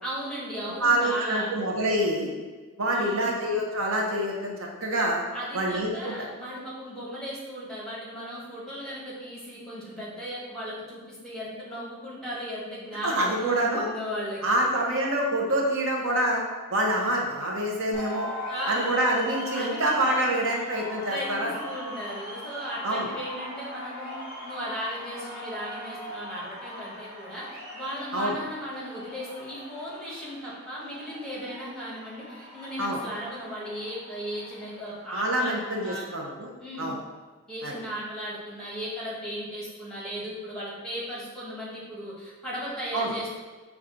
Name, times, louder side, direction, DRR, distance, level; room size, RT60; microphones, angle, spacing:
voice 1, 0.0-1.5 2.9-3.4 5.3-14.7 18.5-18.9 19.5-20.3 21.1-27.5 27.7-36.1 36.6-36.9 37.5-43.3, equal, 5° left, -6 dB, 1.1 m, -36 dB
voice 2, 0.8-2.3 2.8-5.2 5.5-6.1 13.0-13.9 14.4-16.4 16.7-18.3 18.7-21.5 22.8-23.1 28.1-28.4 32.8-33.0 35.1-36.5 36.8-36.9 37.6-37.7 42.9-43.1, right 1 dB, 65° right, 0 dB, 0.7 m, -26 dB
sound 1, 17.9-35.7, equal, 40° right, 1.2 m, -40 dB
5.7 x 2.3 x 3.7 m, 1.4 s
head